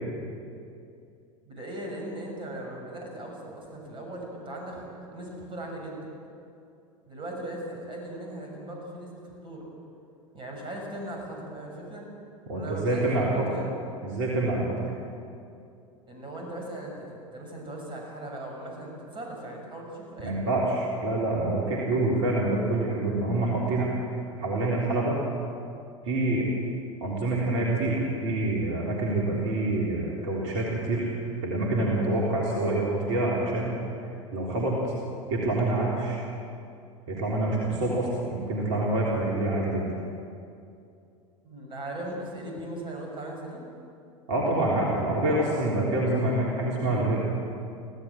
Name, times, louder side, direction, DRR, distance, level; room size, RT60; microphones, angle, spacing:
voice 1, 1.5-6.1 7.0-9.7 10.3-12.0 12.5-13.7 16.1-20.6 41.4-43.7, right 1 dB, 30° right, 0 dB, 7.1 m, -38 dB
voice 2, 12.5-13.6 14.0-14.6 20.2-24.0 24.4-25.2 26.0-26.5 27.0-31.1 31.4-33.8 34.3-34.8 35.3-36.2 37.1-39.9 44.3-47.4, right 2 dB, 60° right, -3 dB, 3.7 m, -26 dB
25.0 x 16.0 x 7.6 m, 2.5 s
figure-of-eight pair, 80°, 17 cm